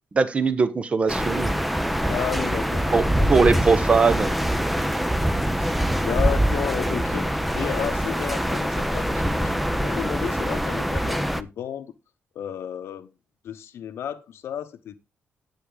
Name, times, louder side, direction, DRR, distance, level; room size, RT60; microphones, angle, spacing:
voice 1, 0.1-1.6 2.9-3.0 3.3-4.4, right 4 dB, 30° right, 1.0 m, -20 dB
sound 1, 1.1-11.4, equal, ahead, 0.6 m, -24 dB
voice 2, 2.1-3.5 5.4-11.9 12.3-13.1 13.4-15.0, left 9 dB, 75° left, 0.9 m, -33 dB
10.5 x 8.3 x 3.9 m
wide cardioid pair, 150°, 4 cm